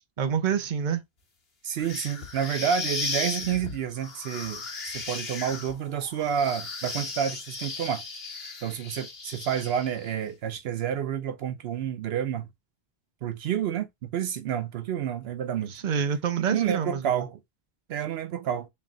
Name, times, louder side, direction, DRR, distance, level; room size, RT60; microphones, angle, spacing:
voice 1, 0.2-1.0 15.7-17.3, right 7 dB, 50° right, 0.8 m, -27 dB
voice 2, 1.6-8.0 8.6-12.5 13.2-15.7 16.5-17.4 17.9-18.7, right 9 dB, 80° right, 0.8 m, -29 dB
sound 1, 1.8-10.1, left 4 dB, 75° left, 1.4 m, -36 dB
3.2 x 3.2 x 3.7 m
omnidirectional pair, 1.0 m